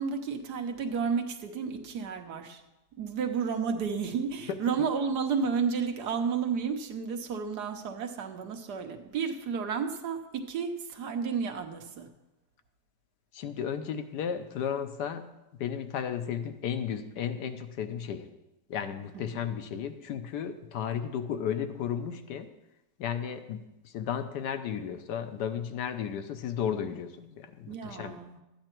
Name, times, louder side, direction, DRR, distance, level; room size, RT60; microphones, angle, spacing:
voice 1, 0.0-2.6 3.0-12.1 19.1-19.4 27.7-28.4, right 6 dB, 70° right, 5 dB, 1.5 m, -32 dB
voice 2, 13.3-15.3 15.6-18.3 18.7-22.5 23.0-28.2, left 8 dB, 75° left, 8 dB, 1.3 m, -34 dB
12.5 x 8.9 x 4.5 m, 0.96 s
omnidirectional pair, 1.9 m